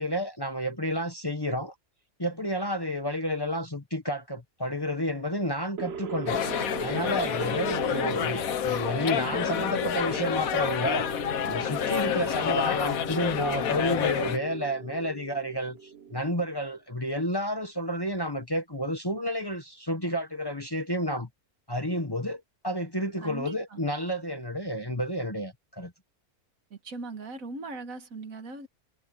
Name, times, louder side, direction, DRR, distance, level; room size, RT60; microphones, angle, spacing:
voice 1, 0.0-1.7 2.2-6.4 6.8-11.1 11.4-21.3 21.7-25.9, equal, 15° left, 1.4 m, -30 dB
sound 1, 5.8-16.6, right 5 dB, 50° right, 1.1 m, -39 dB
sound 2, 6.3-14.4, left 9 dB, 75° left, 1.4 m, -28 dB
voice 2, 7.8-8.2 23.2-23.8 26.7-28.7, right 2 dB, 70° right, 2.0 m, -39 dB
omnidirectional pair, 1.5 m